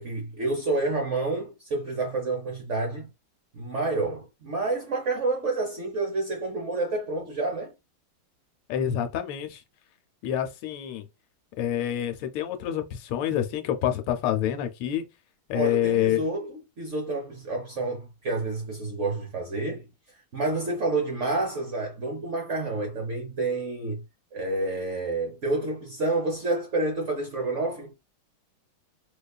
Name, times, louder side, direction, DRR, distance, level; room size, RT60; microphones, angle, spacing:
voice 1, 0.0-3.1 3.5-7.7 15.5-19.8 20.3-24.0 24.3-27.9, right 2 dB, 55° right, 0.8 m, -29 dB
voice 2, 8.7-9.6 10.2-11.0 11.6-15.0 15.5-16.2, left 10 dB, 85° left, 1.5 m, -27 dB
5.1 x 2.3 x 2.3 m
omnidirectional pair, 2.3 m